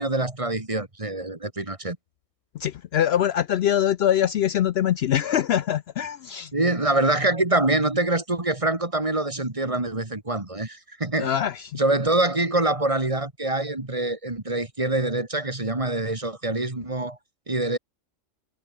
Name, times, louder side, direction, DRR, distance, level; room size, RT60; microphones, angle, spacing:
voice 1, 0.0-2.0 6.5-11.3 11.7-17.2 17.5-17.8, right 2 dB, 25° right, 2.1 m, -25 dB
voice 2, 2.5-6.5 11.2-11.8, left 10 dB, 65° left, 0.7 m, -23 dB
omnidirectional pair, 1.3 m